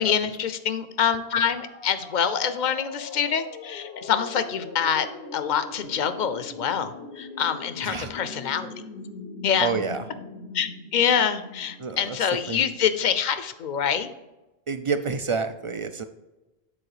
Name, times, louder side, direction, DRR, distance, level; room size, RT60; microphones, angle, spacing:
voice 1, 0.0-5.1 5.3-8.7 9.4-9.7 10.5-14.1, left 8 dB, 55° left, 11 dB, 0.6 m, -25 dB
sound 1, 1.1-12.8, left 4 dB, 75° left, 1.0 m, -41 dB
voice 2, 9.6-10.0 11.8-12.2 12.5-12.6 14.7-16.0, right 5 dB, 45° right, 9 dB, 0.4 m, -28 dB
9.0 x 4.3 x 4.8 m, 1.1 s
omnidirectional pair, 1.1 m